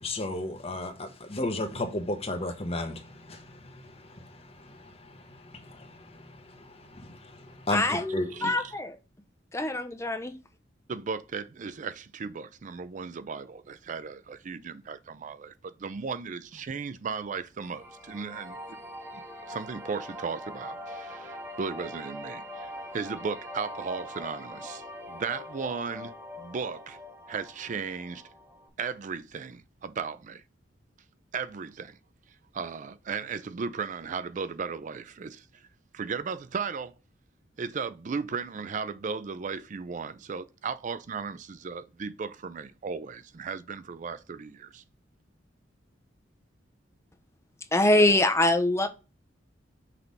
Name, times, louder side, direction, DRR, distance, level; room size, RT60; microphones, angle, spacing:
voice 1, 0.0-8.6, left 2 dB, 35° left, 1.1 m, -35 dB
voice 2, 7.7-8.9 9.5-10.3 47.7-48.9, left 1 dB, 15° left, 0.8 m, -24 dB
voice 3, 8.3-8.8 10.9-18.8 19.1-27.0 27.3-28.2 28.8-30.4 31.3-32.0 32.5-35.7 35.9-37.0 37.6-44.8, right 5 dB, 40° right, 0.4 m, -36 dB
sound 1, 17.6-28.7, left 1 dB, 15° right, 1.4 m, -42 dB
5.9 x 3.4 x 5.4 m
head